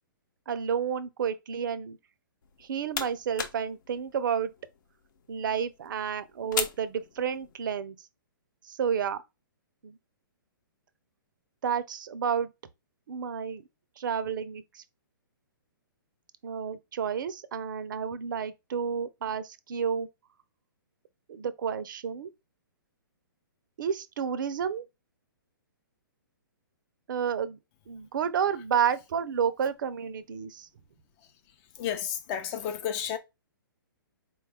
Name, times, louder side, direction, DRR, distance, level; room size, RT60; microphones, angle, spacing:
voice 1, 0.5-2.0 2.6-4.5 5.3-8.0 8.6-9.2 9.8-10.0 11.6-12.5 13.1-13.6 14.0-14.8 16.4-20.1 21.3-22.3 23.8-24.9 27.1-27.6 27.9-30.7, right 7 dB, 60° right, 0.5 m, -30 dB
sound 1, 2.4-7.7, left 6 dB, 60° left, 0.8 m, -39 dB
voice 2, 31.8-33.2, left 9 dB, 30° left, 0.5 m, -32 dB
4.1 x 2.3 x 3.4 m
hypercardioid pair, 135°, 12 cm